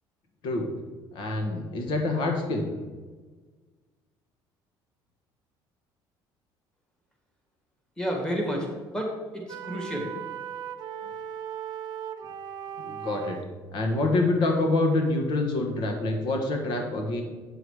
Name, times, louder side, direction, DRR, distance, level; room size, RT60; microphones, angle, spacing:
voice 1, 1.1-2.7 12.8-13.4 13.7-17.2, left 2 dB, 60° left, 3 dB, 1.4 m, -26 dB
voice 2, 8.0-10.1, equal, 10° left, 0 dB, 1.9 m, -31 dB
sound 1, 9.5-13.5, right 9 dB, 50° right, 0.6 m, -37 dB
8.4 x 6.8 x 4.8 m, 1.4 s
cardioid pair, 145°, 9 cm